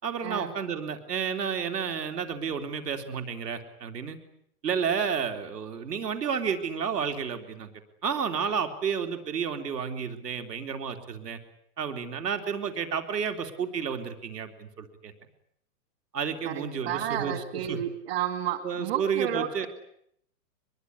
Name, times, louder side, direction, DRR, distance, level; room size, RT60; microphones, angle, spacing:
voice 1, 0.0-4.2 4.6-7.7 8.0-11.4 11.8-15.1 16.1-17.8 18.6-19.7, right 6 dB, 80° right, 7 dB, 4.0 m, -31 dB
voice 2, 16.4-19.7, right 10 dB, 40° right, 8 dB, 2.0 m, -31 dB
23.0 x 23.0 x 9.8 m, 0.70 s
hypercardioid pair, 175°, 47 cm